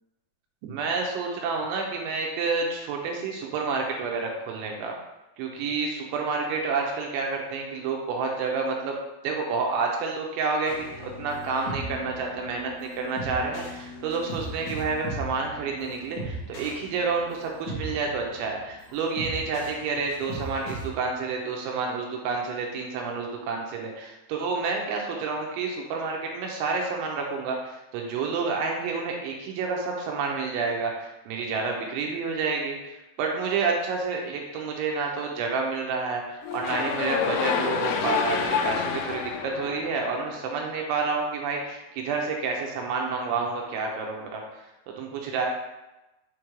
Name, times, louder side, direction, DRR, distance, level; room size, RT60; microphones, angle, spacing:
voice 1, 0.6-5.0 5.4-9.0 9.2-44.4 45.0-45.5, right 4 dB, 85° right, 0 dB, 3.0 m, -29 dB
sound 1, 10.6-20.9, right 1 dB, 65° left, 1.2 m, -38 dB
sound 2, 36.4-40.6, left 7 dB, 90° left, 3.1 m, -28 dB
7.3 x 3.1 x 5.0 m, 0.99 s
omnidirectional pair, 5.5 m